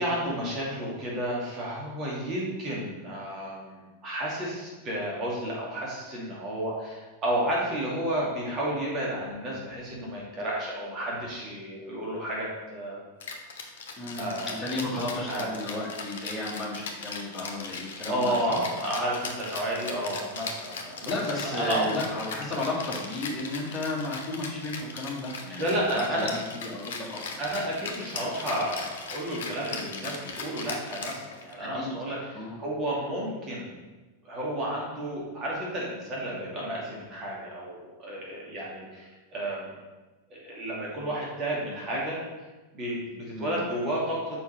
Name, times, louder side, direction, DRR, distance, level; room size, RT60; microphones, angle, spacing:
voice 1, 0.0-13.0 14.2-14.5 15.3-15.5 18.1-21.1 21.4-22.0 25.6-26.3 27.4-33.7 34.2-39.7 40.3-42.2 42.7-44.4, right 1 dB, 30° right, -4 dB, 2.4 m, -31 dB
Rattle (instrument), 13.2-31.7, left 4 dB, 55° left, 1.0 m, -39 dB
voice 2, 14.0-18.6 21.1-27.4 31.6-32.6 43.3-43.6, left 2 dB, 10° left, -6 dB, 2.0 m, -34 dB
7.0 x 5.2 x 4.6 m, 1.2 s
figure-of-eight pair, 90°, 0 cm